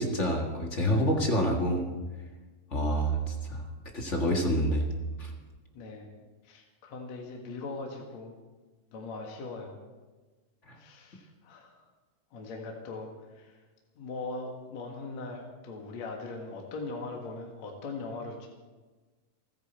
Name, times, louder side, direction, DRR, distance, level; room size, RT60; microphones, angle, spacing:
voice 1, 0.0-1.9 2.7-3.7 3.9-4.9 5.2-5.3 10.7-10.8, equal, 35° left, 1 dB, 1.2 m, -27 dB
voice 2, 5.7-6.1 6.4-8.4 8.9-9.8 10.8-11.8 12.3-13.6 14.0-18.5, left 3 dB, 55° left, 0 dB, 2.8 m, -40 dB
29.0 x 10.5 x 4.4 m, 1.3 s
omnidirectional pair, 3.9 m